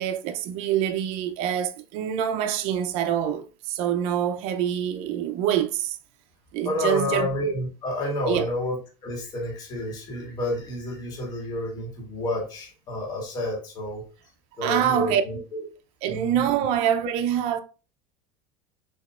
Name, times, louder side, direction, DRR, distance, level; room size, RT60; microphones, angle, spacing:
voice 1, 0.0-6.0 6.5-7.3 8.3-8.5 14.6-15.2 16.0-17.6, right 9 dB, 55° right, 0.5 m, -25 dB
voice 2, 6.6-14.0 14.6-15.6 16.1-16.4, left 1 dB, 35° left, 1.8 m, -30 dB
6.2 x 2.9 x 2.4 m
cardioid pair, 145°, 13 cm